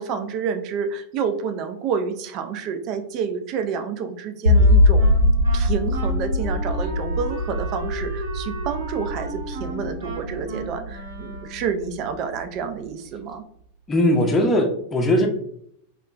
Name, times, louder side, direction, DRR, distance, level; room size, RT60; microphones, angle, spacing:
voice 1, 0.0-5.1 5.5-13.4, right 6 dB, 40° right, 7 dB, 0.3 m, -29 dB
sound 1, 4.5-11.7, left 1 dB, 85° left, 0.3 m, -21 dB
Wind instrument woodwind instrument, 4.5-11.8, right 1 dB, 65° right, 0.8 m, -36 dB
voice 2, 13.9-15.3, left 1 dB, 20° left, 3 dB, 0.5 m, -19 dB
2.8 x 2.3 x 2.3 m, 0.68 s
figure-of-eight pair, 90°, 0 cm